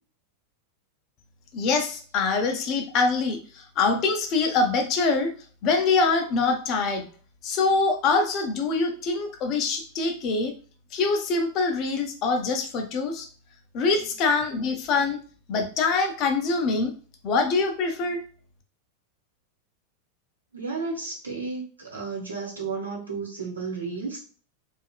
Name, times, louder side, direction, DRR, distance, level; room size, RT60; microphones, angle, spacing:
voice 1, 1.5-5.3 5.6-7.1 7.4-10.5 10.9-13.3 13.7-15.2 15.5-16.9 17.2-18.2, left 4 dB, 40° left, 5 dB, 0.6 m, -24 dB
voice 2, 20.5-24.2, right 4 dB, 75° right, -2 dB, 0.9 m, -33 dB
2.7 x 2.4 x 2.3 m, 0.40 s
figure-of-eight pair, 90°, 0 cm